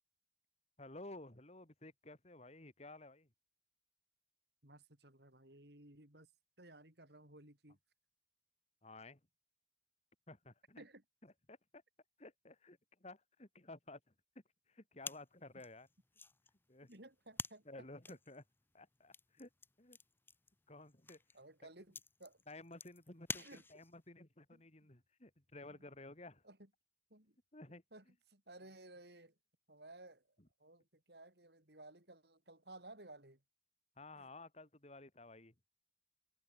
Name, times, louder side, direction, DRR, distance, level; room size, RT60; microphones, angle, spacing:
voice 1, 0.8-3.3 8.8-9.2 10.3-10.8 11.2-11.8 12.2-14.0 14.7-15.9 16.7-16.9 17.6-18.4 18.7-19.5 19.8-20.0 20.7-21.2 22.5-26.4 27.5-27.8 30.4-30.5 34.0-35.5, left 2 dB, 35° left, 2.7 m, -54 dB
voice 2, 4.6-6.3 6.6-7.8 10.8-11.0 16.9-17.7 18.1-18.2 21.3-22.4 23.4-23.6 24.5-24.6 25.7-25.8 26.4-26.7 27.1-27.4 27.7-29.3 29.7-33.4 34.1-34.3, right 2 dB, 60° right, 5.8 m, -58 dB
sound 1, 15.0-24.1, left 4 dB, 10° left, 0.6 m, -50 dB
head